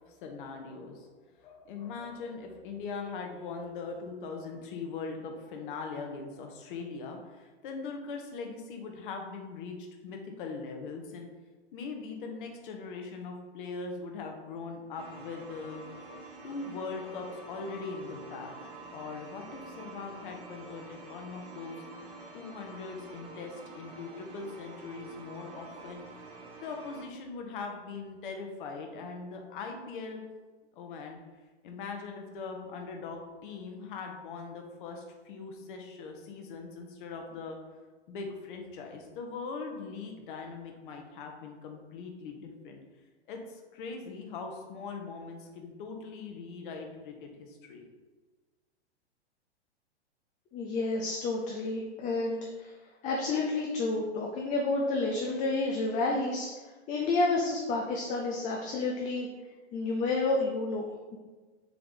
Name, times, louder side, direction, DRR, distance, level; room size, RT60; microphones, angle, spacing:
voice 1, 0.0-9.8 10.0-11.3 11.7-15.8 16.4-21.8 22.3-26.0 26.6-30.3 30.8-31.2 31.6-37.6 38.1-42.8 43.3-47.8, left 4 dB, 50° left, 3 dB, 1.2 m, -41 dB
sound 1, 15.0-27.1, right 2 dB, 45° right, 1.3 m, -48 dB
voice 2, 50.5-52.7 53.0-56.5 56.9-59.3 59.7-61.2, left 3 dB, 20° left, -1 dB, 0.6 m, -30 dB
6.9 x 3.4 x 4.0 m, 1.3 s
figure-of-eight pair, 105°, 34 cm